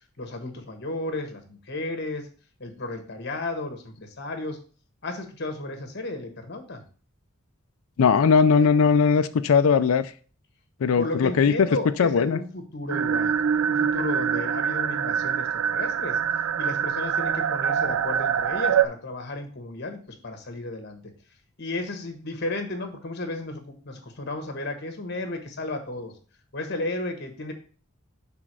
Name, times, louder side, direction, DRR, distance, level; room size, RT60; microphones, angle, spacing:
voice 1, 0.2-2.3 2.6-4.6 5.0-6.8 11.0-13.3 13.7-16.2 16.6-21.1 21.6-26.1 26.5-27.5, left 2 dB, 55° left, 1.3 m, -33 dB
voice 2, 8.0-10.1 10.8-11.7 12.0-12.4, left 5 dB, 85° left, 0.4 m, -19 dB
sound 1, 12.9-18.9, right 8 dB, 90° right, 0.4 m, -24 dB
6.1 x 3.6 x 6.1 m
head